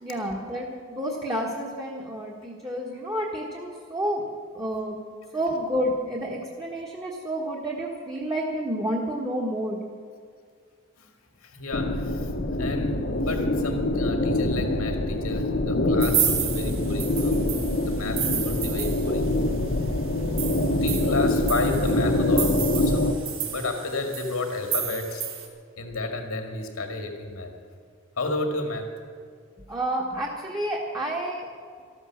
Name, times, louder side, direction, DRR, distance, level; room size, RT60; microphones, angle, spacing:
voice 1, 0.0-4.2 4.5-5.0 5.3-9.8 29.7-31.5, right 1 dB, 15° right, -2 dB, 1.3 m, -30 dB
voice 2, 11.4-17.6 17.9-19.3 20.8-23.2 23.4-25.2 25.8-27.5 28.2-28.9, left 2 dB, 85° left, 4 dB, 2.1 m, -32 dB
sound 1, 11.7-23.1, left 1 dB, 55° left, 1.0 m, -25 dB
sound 2, 16.0-19.5 19.8-19.9 20.2-25.5, right 9 dB, 65° right, 1.8 m, -31 dB
13.5 x 12.5 x 7.3 m, 2.1 s
head